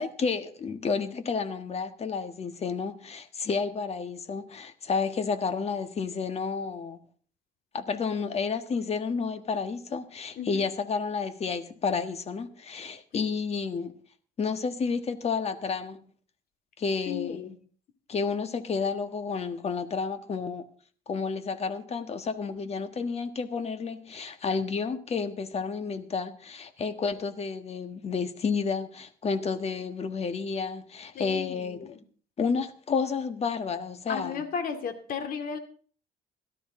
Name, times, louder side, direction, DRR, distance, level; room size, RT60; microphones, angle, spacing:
voice 1, 0.0-7.0 7.7-13.9 14.4-16.0 16.8-17.4 18.1-20.6 21.1-31.9 32.4-34.4, left 5 dB, 40° left, 1.5 m, -31 dB
voice 2, 17.1-17.6 31.1-32.0 34.1-35.6, left 6 dB, 60° left, 2.3 m, -35 dB
17.5 x 12.5 x 3.8 m
cardioid pair, 110°, 17 cm